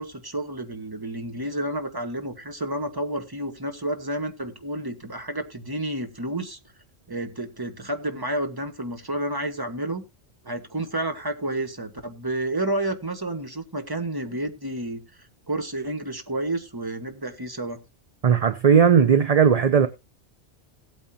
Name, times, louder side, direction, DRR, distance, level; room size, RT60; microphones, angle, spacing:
voice 1, 0.0-6.6 7.1-10.0 10.4-15.0 15.5-17.8, right 1 dB, 20° right, 1.4 m, -30 dB
voice 2, 18.2-19.9, right 7 dB, 40° right, 0.6 m, -17 dB
17.5 x 8.8 x 2.8 m
omnidirectional pair, 1.2 m